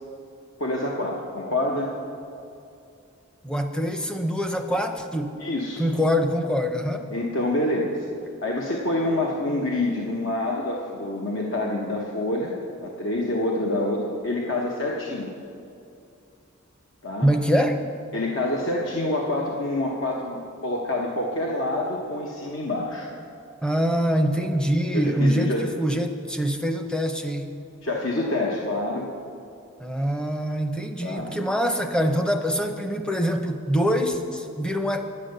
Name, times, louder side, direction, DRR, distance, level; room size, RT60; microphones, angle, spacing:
voice 1, 0.6-1.9 5.4-5.8 7.1-8.1 8.4-15.3 17.0-17.3 18.1-23.1 24.9-25.7 27.8-29.1 31.0-31.3, left 1 dB, 65° left, -1 dB, 1.0 m, -27 dB
voice 2, 3.4-5.4 5.8-7.1 17.2-17.8 23.6-27.6 29.8-35.1, equal, 5° left, 5 dB, 0.6 m, -24 dB
9.8 x 9.6 x 6.6 m, 2.6 s
head